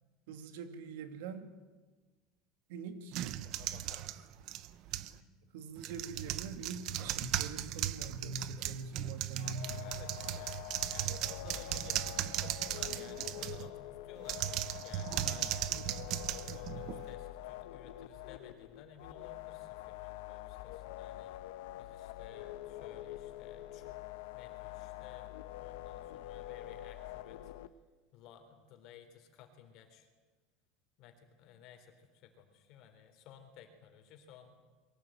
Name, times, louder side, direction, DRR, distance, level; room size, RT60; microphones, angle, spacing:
voice 1, 0.3-1.5 2.7-3.2 5.5-10.0, right 4 dB, 80° right, 8 dB, 2.7 m, -43 dB
sound 1, 3.1-5.2 5.8-13.7 14.2-17.1, right 13 dB, 40° right, 0.9 m, -37 dB
voice 2, 3.4-4.3 5.1-5.3 6.1-6.3 9.7-21.4 21.8-23.9 24.3-27.5 28.1-30.1 31.0-34.6, left 8 dB, 40° left, 6 dB, 3.7 m, -56 dB
sound 2, 9.4-27.7, left 15 dB, 75° left, 1.2 m, -46 dB
23.0 x 18.0 x 9.1 m, 1.3 s
cardioid pair, 175°, 0 cm